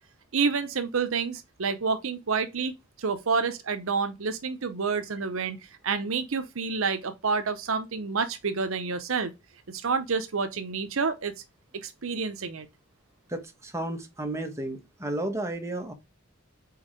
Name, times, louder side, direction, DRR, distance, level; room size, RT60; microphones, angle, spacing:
voice 1, 0.3-5.6 5.8-9.3 9.7-11.3 11.7-12.7, right 5 dB, 65° right, 0.7 m, -29 dB
voice 2, 13.3-15.9, right 1 dB, 15° right, 1.1 m, -33 dB
4.7 x 4.4 x 4.9 m
head